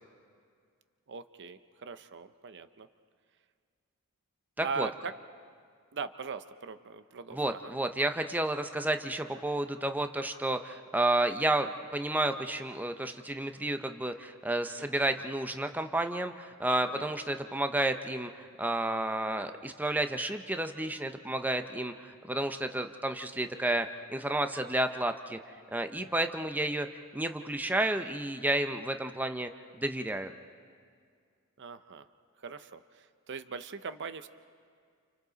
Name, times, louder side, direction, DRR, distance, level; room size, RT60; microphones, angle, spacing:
voice 1, 1.1-2.9 4.6-5.1 5.9-7.7 14.8-14.9 16.9-17.1 31.6-32.1 32.4-34.3, right 5 dB, 55° right, 11 dB, 0.7 m, -40 dB
voice 2, 4.6-4.9 7.3-25.4 25.7-26.9 27.1-29.5 29.8-30.3, right 1 dB, 10° right, 7 dB, 0.7 m, -31 dB
29.5 x 29.5 x 4.0 m, 2.1 s
head